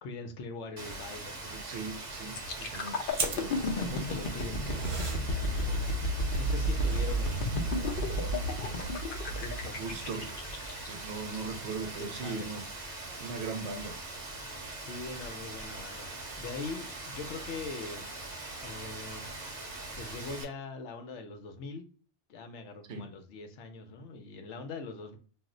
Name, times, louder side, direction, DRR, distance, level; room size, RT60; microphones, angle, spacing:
voice 1, 0.0-1.4 3.5-5.9 6.4-9.0 9.3-9.8 12.0-12.5 14.8-16.1 16.4-18.1 18.6-19.2 20.0-21.9 22.3-25.2, left 3 dB, 80° left, 1.0 m, -42 dB
Rain, 0.8-20.4, right 2 dB, 35° right, 0.8 m, -42 dB
voice 2, 1.4-3.7 9.8-10.3 10.9-12.6 12.9-14.0 22.9-23.1, right 4 dB, 75° right, 0.8 m, -39 dB
sound 1, 2.3-12.2 12.6-12.8, equal, 55° left, 0.7 m, -32 dB
sound 2, 3.1-8.9, right 3 dB, 50° right, 0.4 m, -40 dB
2.4 x 2.1 x 3.6 m
omnidirectional pair, 1.2 m